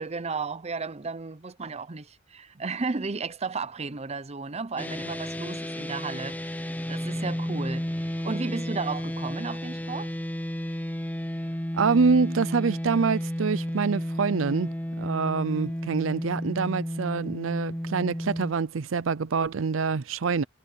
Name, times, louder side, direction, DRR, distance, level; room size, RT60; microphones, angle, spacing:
voice 1, 0.0-10.1, right 4 dB, 35° right, 0.7 m, -34 dB
sound 1, 4.8-18.5, equal, 10° left, 0.9 m, -32 dB
voice 2, 11.7-20.4, right 5 dB, 80° right, 0.6 m, -26 dB
head